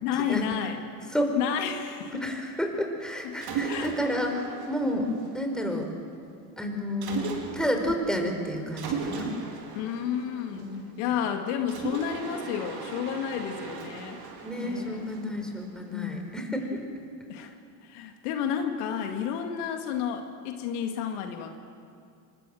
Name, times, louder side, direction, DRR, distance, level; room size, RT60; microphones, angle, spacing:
voice 1, 0.0-0.8 1.4-2.2 3.2-3.4 3.7-3.9 9.7-10.7 11.0-14.2 14.6-15.2 15.9-16.3 17.3-17.5 17.8-21.6, left 8 dB, 75° left, 5 dB, 2.1 m, -31 dB
voice 2, 2.1-5.1 5.3-5.9 6.6-9.3 10.5-10.8 14.4-16.8, equal, ahead, 3 dB, 5.0 m, -30 dB
Mechanisms, 3.4-5.8 7.0-7.9 8.8-11.1 11.7-15.8, right 5 dB, 50° right, 4.4 m, -37 dB
25.0 x 20.5 x 7.7 m, 2.4 s
hypercardioid pair, 80°, 48 cm